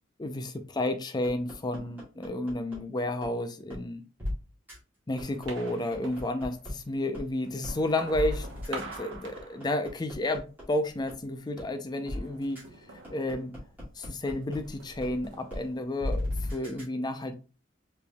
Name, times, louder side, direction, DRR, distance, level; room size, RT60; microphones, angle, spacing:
voice 1, 0.2-4.0 5.1-12.6 13.1-13.5 14.0-16.2 16.5-17.3, left 1 dB, 20° left, 0.5 m, -31 dB
sound 1, 1.2-2.8 3.2-3.3 3.7-3.8 4.2-4.3 4.7-4.8 5.2-6.7 7.1-7.2 7.6-7.8 8.1-10.6 11.1-11.2 11.6-11.7 12.1-12.2 12.6-12.7 13.0-14.6 15.0-15.1 15.5-15.6 16.0-16.8, left 1 dB, 10° right, 2.2 m, -35 dB
sound 2, 5.2-6.8 7.3-10.3 10.6-11.2 12.1-14.0 14.3-16.4, right 2 dB, 65° right, 0.9 m, -46 dB
4.9 x 3.4 x 2.2 m
head